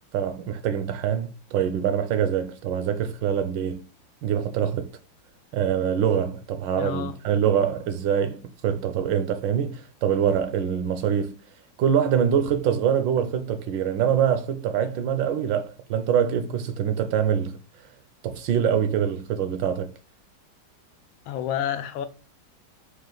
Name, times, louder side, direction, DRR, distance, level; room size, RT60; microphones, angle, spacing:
voice 1, 0.1-3.8 4.2-4.9 5.5-11.3 11.8-17.6 18.2-19.9, right 8 dB, 75° right, 1.2 m, -24 dB
voice 2, 6.8-7.1 21.3-22.1, left 10 dB, 85° left, 1.4 m, -29 dB
4.9 x 2.4 x 3.8 m
omnidirectional pair, 2.2 m